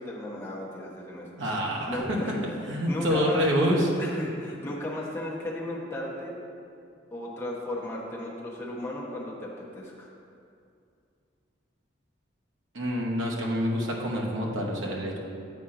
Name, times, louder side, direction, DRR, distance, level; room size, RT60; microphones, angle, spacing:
voice 1, 0.0-1.3 1.8-2.4 2.9-3.4 4.0-6.4 7.1-10.1, left 1 dB, 15° left, -5 dB, 0.9 m, -35 dB
voice 2, 1.4-3.9 12.7-15.2, equal, 85° right, -2 dB, 1.0 m, -27 dB
8.2 x 4.4 x 3.7 m, 2.5 s
head